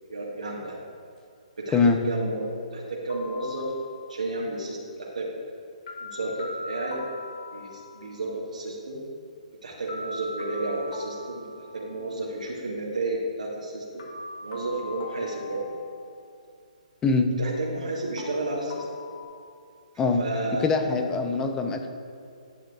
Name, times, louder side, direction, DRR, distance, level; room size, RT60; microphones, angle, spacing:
voice 1, 0.1-0.8 1.6-3.7 4.1-5.3 6.0-7.1 7.5-9.0 9.6-14.0 14.4-15.7 17.4-18.9 20.2-20.9, right 2 dB, 75° right, -5 dB, 1.6 m, -32 dB
sound 1, 3.1-4.2 5.9-8.2 9.9-12.2 14.0-16.3 18.2-19.2, left 2 dB, 50° left, 1.8 m, -40 dB
voice 2, 20.6-21.9, left 4 dB, 15° left, 5 dB, 0.7 m, -23 dB
11.5 x 8.9 x 2.4 m, 2.4 s
figure-of-eight pair, 135°, 4 cm